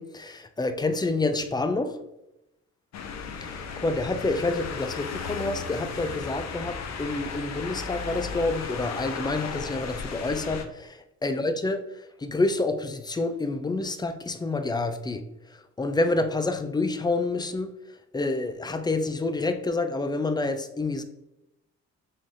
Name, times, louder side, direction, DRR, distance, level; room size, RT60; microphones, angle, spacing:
voice 1, 0.0-2.0 3.4-17.7 18.1-21.0, left 2 dB, 15° left, 0.4 m, -28 dB
sound 1, 2.9-10.6, left 5 dB, 60° left, 0.6 m, -35 dB
5.6 x 3.3 x 2.6 m
cardioid pair, 90°, 30 cm